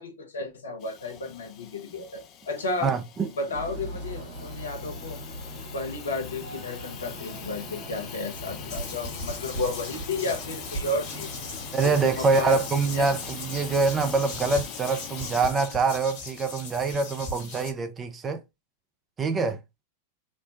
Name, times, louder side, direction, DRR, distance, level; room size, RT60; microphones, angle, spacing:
voice 1, 0.0-2.9 3.4-5.2 5.7-11.3 11.8-12.6 12.9-13.0, left 2 dB, 70° left, 0.8 m, -33 dB
Hiss / Toilet flush / Trickle dribble, 0.8-15.5, left 9 dB, 35° left, 0.5 m, -43 dB
voice 2, 2.8-3.3 11.7-18.4 19.2-19.6, right 4 dB, 20° right, 0.5 m, -25 dB
sound 1, 3.5-14.6, equal, 70° right, 1.3 m, -41 dB
sound 2, 8.7-17.7, left 2 dB, 50° left, 1.3 m, -38 dB
4.3 x 2.2 x 2.5 m
figure-of-eight pair, 90°, 0 cm